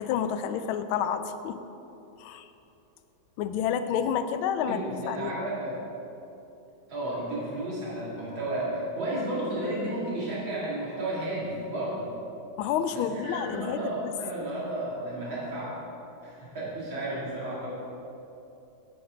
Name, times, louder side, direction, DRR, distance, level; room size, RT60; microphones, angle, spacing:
voice 1, 0.0-1.6 2.2-2.5 3.4-5.3 12.6-14.1, left 8 dB, 90° left, 10 dB, 1.4 m, -29 dB
voice 2, 4.7-5.8 6.9-12.1 12.9-15.8 16.2-17.7, right 1 dB, 75° right, -7 dB, 3.5 m, -33 dB
8.7 x 8.0 x 5.1 m, 2.9 s
omnidirectional pair, 2.2 m